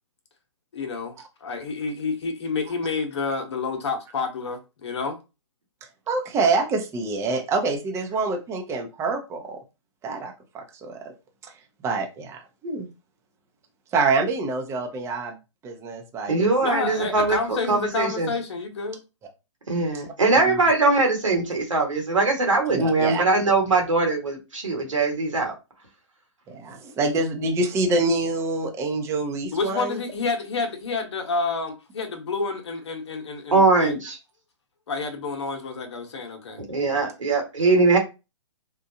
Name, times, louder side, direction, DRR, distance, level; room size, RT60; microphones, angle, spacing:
voice 1, 0.7-5.2 16.6-19.0 29.5-34.0 34.9-36.6, left 4 dB, 60° left, 0.9 m, -29 dB
voice 2, 6.1-9.6 10.0-11.1 11.4-11.5 11.8-12.9 13.9-15.3 15.6-16.5 19.9-20.0 20.4-20.6 22.7-23.2 26.5-30.0, right 3 dB, 15° right, 0.7 m, -26 dB
voice 3, 16.3-18.3 19.7-25.5 33.5-34.2 36.7-38.0, right 3 dB, 85° right, 1.5 m, -21 dB
4.2 x 2.3 x 2.7 m
hypercardioid pair, 130°, 16 cm